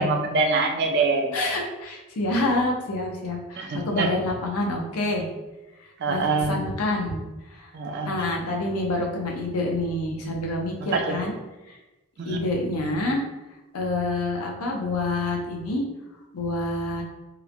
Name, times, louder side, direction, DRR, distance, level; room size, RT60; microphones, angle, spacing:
voice 1, 0.0-1.3 3.6-4.1 6.0-6.6 7.7-8.1 10.8-11.2 12.2-12.4, right 3 dB, 50° right, 3 dB, 0.4 m, -24 dB
voice 2, 1.3-5.2 6.1-7.2 7.5-7.7 8.0-11.3 11.7-11.8 12.3-13.2 13.7-15.8 16.3-17.0, left 2 dB, 85° left, 0 dB, 0.6 m, -27 dB
2.9 x 2.1 x 2.5 m, 1.1 s
head